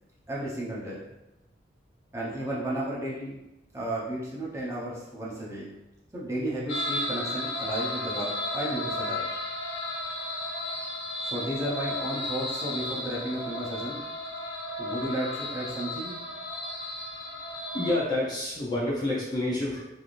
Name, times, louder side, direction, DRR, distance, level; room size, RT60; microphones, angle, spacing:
voice 1, 0.3-1.0 2.1-3.4 3.7-5.7 6.1-9.2 11.2-14.0 14.8-16.2, right 1 dB, 15° right, -7 dB, 0.7 m, -33 dB
sound 1, 6.7-17.9, left 1 dB, 70° left, 0.7 m, -34 dB
voice 2, 17.7-19.8, left 2 dB, 25° left, -5 dB, 0.6 m, -28 dB
3.3 x 2.6 x 2.5 m, 0.97 s
head